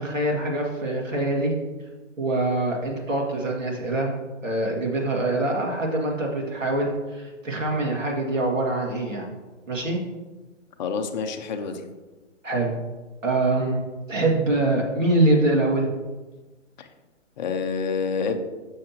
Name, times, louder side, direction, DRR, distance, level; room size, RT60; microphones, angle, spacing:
voice 1, 0.0-1.5 2.2-4.1 4.4-9.3 9.7-10.0 12.4-12.7 13.2-13.8 14.1-15.9, right 2 dB, 85° right, -1 dB, 2.2 m, -24 dB
voice 2, 10.8-11.8 16.8-16.9 17.4-18.4, left 5 dB, 35° left, 6 dB, 0.7 m, -27 dB
7.1 x 6.4 x 3.0 m, 1.2 s
hypercardioid pair, 140°, 37 cm